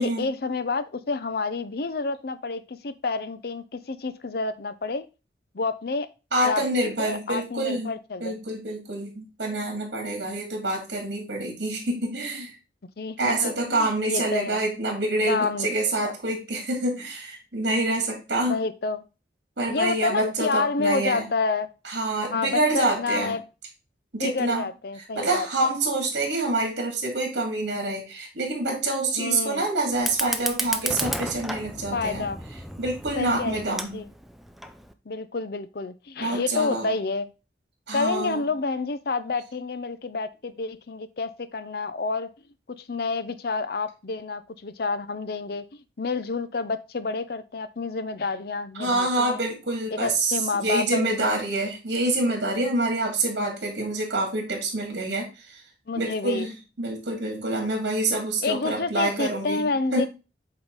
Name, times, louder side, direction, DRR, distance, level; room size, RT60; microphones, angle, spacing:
voice 1, 0.0-5.1 5.5-6.1 6.4-8.3 13.0-14.6 15.3-15.7 16.0-16.1 18.5-19.1 19.7-21.7 22.3-23.4 24.2-25.5 29.2-29.7 31.9-32.4 33.2-34.1 35.1-37.3 37.9-42.3 42.7-49.4 49.9-51.4 55.9-56.5 58.4-60.1, left 4 dB, 55° left, 13 dB, 0.6 m, -29 dB
voice 2, 6.3-7.9 8.2-12.5 13.2-18.6 19.6-21.3 21.8-23.4 24.1-24.6 25.0-32.3 32.8-34.0 36.2-36.9 37.9-38.4 48.8-55.6 55.9-60.1, right 2 dB, 70° right, 1 dB, 2.6 m, -27 dB
Fire, 29.9-34.9, equal, ahead, 0.5 m, -33 dB
7.9 x 3.8 x 3.9 m, 0.30 s
head